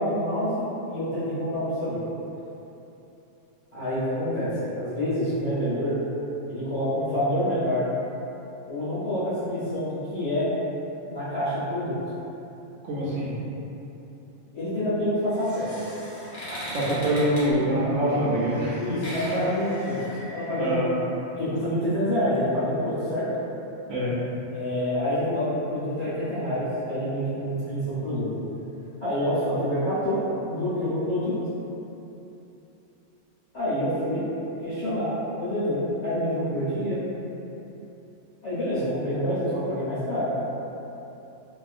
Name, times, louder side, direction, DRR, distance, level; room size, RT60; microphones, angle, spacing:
voice 1, 0.0-2.0 3.7-6.0 6.5-7.8 8.7-10.5 11.1-11.9 14.5-15.8 16.7-16.9 18.8-20.0 20.3-20.7 21.3-23.3 24.5-28.3 29.0-30.2 30.5-31.3 33.5-34.2 34.6-37.0 38.4-40.3, equal, 60° left, -15 dB, 1.3 m, -27 dB
voice 2, 12.8-13.3 16.7-18.8 20.6-20.9 23.9-24.1, right 1 dB, 80° right, -8 dB, 1.0 m, -24 dB
sound 1, 15.2-20.7, equal, 45° left, 0.8 m, -39 dB
2.8 x 2.4 x 2.4 m, 3.0 s
omnidirectional pair, 1.4 m